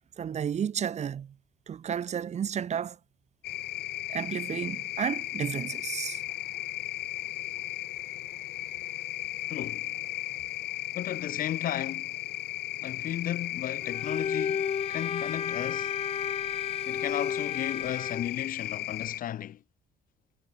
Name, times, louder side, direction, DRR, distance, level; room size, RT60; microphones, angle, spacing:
voice 1, 0.2-1.3 1.7-3.0 4.1-6.2, right 8 dB, 40° right, 1.3 m, -32 dB
sound 1, 3.4-19.2, left 15 dB, 75° left, 2.4 m, -35 dB
voice 2, 9.5-9.9 10.9-12.1 12.8-15.9 16.9-19.6, left 11 dB, 55° left, 1.1 m, -35 dB
Bowed string instrument, 13.8-18.3, left 7 dB, 35° left, 1.7 m, -33 dB
cardioid pair, 110°, 17 cm